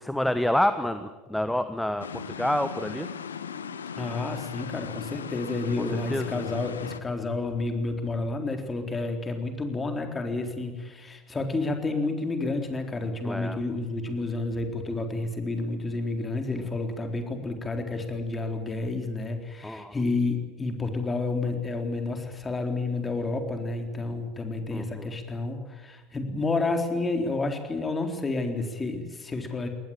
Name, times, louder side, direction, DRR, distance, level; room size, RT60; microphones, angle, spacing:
voice 1, 0.0-3.1 6.1-6.3 13.2-13.6 19.6-19.9 24.7-25.1, left 1 dB, 5° left, 10 dB, 1.2 m, -28 dB
sound 1, 2.0-7.0, left 7 dB, 80° left, 1.0 m, -37 dB
voice 2, 4.0-29.7, left 3 dB, 20° left, 5 dB, 3.9 m, -30 dB
23.0 x 19.0 x 9.0 m, 1.3 s
figure-of-eight pair, 75°, 0 cm